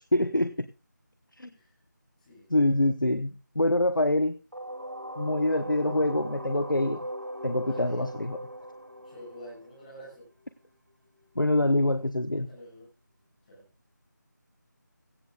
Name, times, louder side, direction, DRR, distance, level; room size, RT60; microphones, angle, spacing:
voice 1, 0.1-0.5 1.4-1.5 2.5-4.4 5.2-7.0 7.4-8.4 11.4-12.5, left 1 dB, 90° left, 1.0 m, -25 dB
sound 1, 4.5-10.2, right 1 dB, 85° right, 3.3 m, -39 dB
voice 2, 5.7-6.0 7.6-8.1 8.9-10.3 12.5-12.9 13.5-13.7, equal, 20° left, 5.9 m, -47 dB
17.0 x 15.5 x 2.4 m
figure-of-eight pair, 165°, 10 cm